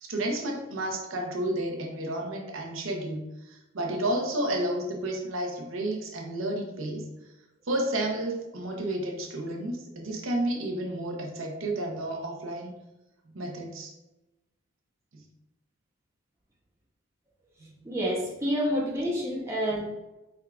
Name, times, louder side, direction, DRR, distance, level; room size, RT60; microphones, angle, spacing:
voice 1, 0.0-7.0 7.6-12.7 13.3-13.9 15.1-15.2 17.6-17.7, right 1 dB, 70° right, 1 dB, 0.7 m, -31 dB
voice 2, 17.8-19.8, equal, 15° right, -4 dB, 0.7 m, -28 dB
4.6 x 3.6 x 2.3 m, 0.98 s
head